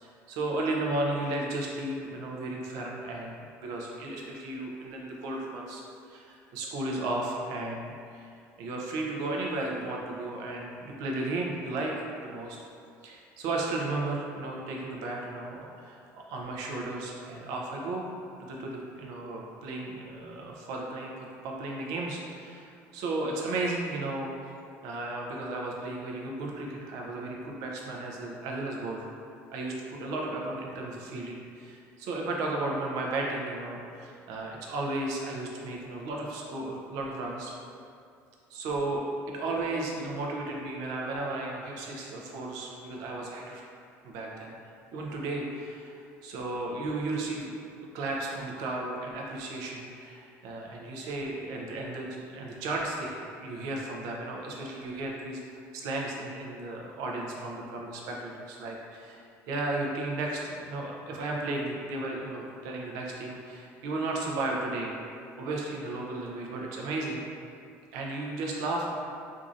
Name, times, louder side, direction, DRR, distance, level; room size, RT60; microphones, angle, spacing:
voice 1, 0.0-5.8 6.1-8.3 8.6-11.9 12.2-12.6 13.0-18.1 18.4-24.3 24.8-29.1 29.5-37.5 38.5-43.6 44.0-44.5 44.9-47.5 47.9-65.0 65.4-67.2 67.9-68.9, right 2 dB, 75° right, -1 dB, 0.6 m, -34 dB
4.6 x 2.6 x 2.5 m, 2.4 s
cardioid pair, 155°, 6 cm